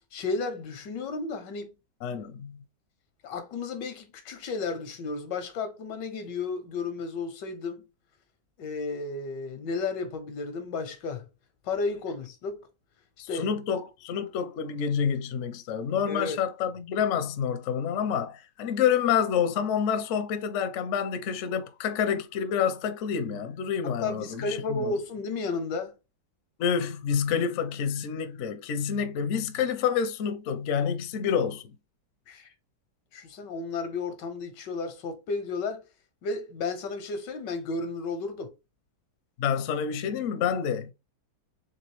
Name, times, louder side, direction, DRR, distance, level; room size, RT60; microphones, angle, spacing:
voice 1, 0.1-1.7 3.2-7.8 8.6-11.3 11.6-12.7 13.3-13.5 16.1-16.4 23.8-25.9 32.3-32.5 33.1-35.8 36.2-38.5, left 3 dB, 85° left, 1.5 m, -33 dB
voice 2, 2.0-2.6 13.2-25.0 26.6-31.7 39.4-40.9, left 7 dB, 65° left, 0.8 m, -28 dB
4.0 x 3.3 x 3.0 m
omnidirectional pair, 1.9 m